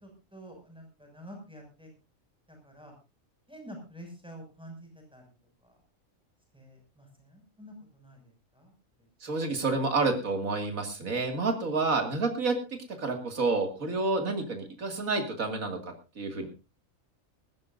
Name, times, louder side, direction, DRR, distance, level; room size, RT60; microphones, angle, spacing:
voice 1, 0.3-1.9 2.5-2.9 3.5-5.2 5.6-5.8 6.5-8.7, equal, 5° right, 2 dB, 6.3 m, -48 dB
voice 2, 9.2-12.6 13.0-16.5, right 3 dB, 85° right, 4 dB, 2.8 m, -29 dB
20.0 x 16.0 x 2.6 m, 0.29 s
omnidirectional pair, 1.4 m